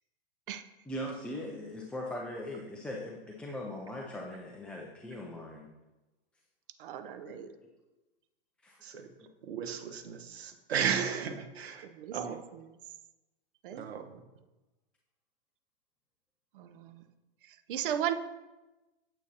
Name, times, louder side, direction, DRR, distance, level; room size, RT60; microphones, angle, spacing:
voice 1, 0.9-5.7 7.3-7.5 8.6-8.8, left 1 dB, 5° left, -2 dB, 0.4 m, -40 dB
voice 2, 6.8-7.5 11.8-12.2 13.6-13.9 16.5-17.1 17.5-18.1, right 10 dB, 60° right, 9 dB, 0.7 m, -36 dB
voice 3, 9.4-11.9 12.1-12.4 13.7-14.2, right 7 dB, 85° right, 7 dB, 1.3 m, -34 dB
9.2 x 8.1 x 2.9 m, 1.1 s
hypercardioid pair, 140°, 30 cm